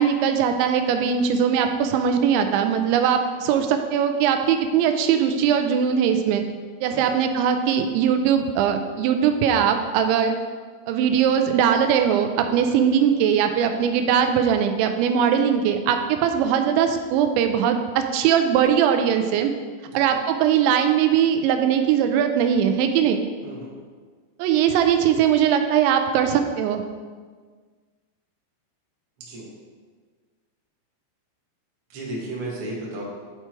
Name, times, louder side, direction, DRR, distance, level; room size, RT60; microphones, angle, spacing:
voice 1, 0.0-6.4 6.8-10.3 10.9-19.5 19.9-23.2 24.4-26.8, right 8 dB, 85° right, 6 dB, 2.9 m, -20 dB
voice 2, 19.8-20.2 23.4-23.7 29.2-29.4 31.9-33.0, right 2 dB, 65° right, -5 dB, 1.3 m, -34 dB
8.1 x 4.5 x 4.4 m, 1.6 s
omnidirectional pair, 5.2 m